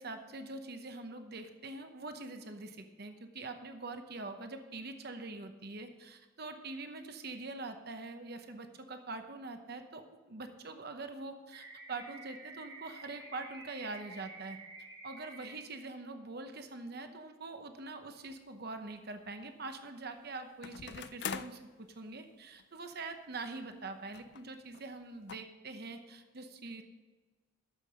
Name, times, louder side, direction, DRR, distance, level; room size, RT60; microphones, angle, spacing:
voice 1, 0.0-14.6 15.0-26.8, right 3 dB, 50° right, 7 dB, 0.9 m, -44 dB
sound 1, 11.5-15.5, right 3 dB, 65° right, 2.9 m, -50 dB
sound 2, 18.3-18.4 20.6-21.7 22.6-22.7 22.9-23.0 24.1-24.5 24.7-24.9 25.3-25.4, left 7 dB, 50° left, 0.4 m, -42 dB
12.5 x 7.5 x 5.0 m, 1.3 s
head